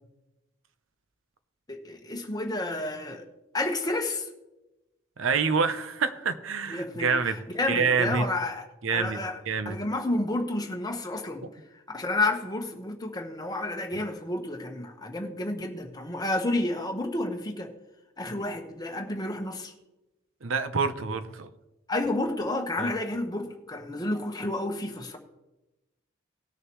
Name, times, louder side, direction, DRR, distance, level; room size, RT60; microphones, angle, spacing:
voice 1, 1.7-3.2 3.5-4.3 6.7-8.6 8.9-9.4 9.6-11.4 11.9-17.7 18.2-19.7 21.9-25.2, left 2 dB, 20° left, 1.1 m, -30 dB
voice 2, 5.2-7.4 7.7-8.2 8.8-9.8 13.9-14.0 20.4-21.5 22.8-22.9, right 5 dB, 75° right, 0.7 m, -27 dB
19.0 x 6.6 x 3.1 m
head